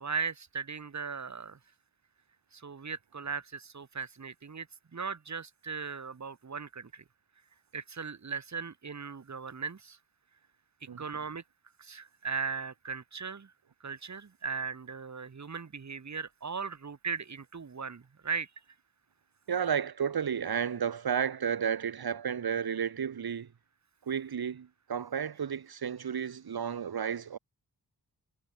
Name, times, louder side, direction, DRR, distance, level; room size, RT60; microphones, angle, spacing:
voice 1, 0.0-1.6 2.5-4.7 4.9-7.0 7.7-10.0 11.0-11.4 11.8-13.5 13.8-18.5, right 5 dB, 45° right, 1.8 m, -38 dB
voice 2, 19.5-23.5 24.0-27.4, right 7 dB, 70° right, 1.6 m, -32 dB
wide cardioid pair, 125°, 39 cm